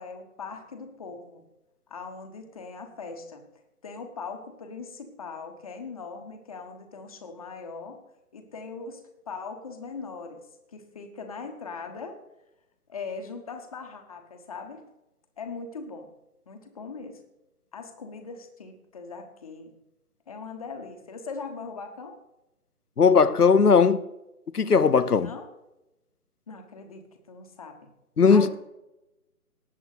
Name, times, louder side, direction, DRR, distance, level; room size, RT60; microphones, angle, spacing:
voice 1, 0.0-1.5 1.9-3.4 3.8-8.0 8.3-10.4 10.7-12.2 12.9-14.8 15.4-16.1 16.5-17.2 17.7-19.8 20.3-22.2 25.2-25.5 26.5-27.9 28.3-28.6, left 4 dB, 25° left, 1.1 m, -40 dB
voice 2, 23.0-24.0 24.5-25.3 28.2-28.5, left 5 dB, 80° left, 0.9 m, -18 dB
18.5 x 7.7 x 4.0 m
figure-of-eight pair, 145°, 45 cm